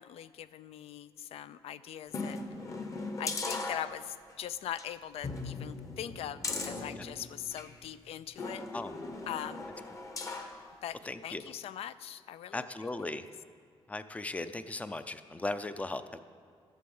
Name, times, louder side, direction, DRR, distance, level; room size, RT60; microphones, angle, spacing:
voice 1, 0.0-2.4 3.2-8.6 9.3-9.7 10.8-12.9 13.2-13.3, left 10 dB, 75° left, 15 dB, 0.4 m, -41 dB
sound 1, 2.1-4.3 4.7-4.9 5.2-7.7 8.4-10.6 11.0-11.1, left 3 dB, 30° left, 0.9 m, -38 dB
voice 2, 11.1-11.4 12.5-13.2 13.9-16.2, left 2 dB, 15° left, 12 dB, 0.4 m, -37 dB
11.5 x 7.6 x 7.1 m, 2.2 s
cardioid pair, 155°, 10 cm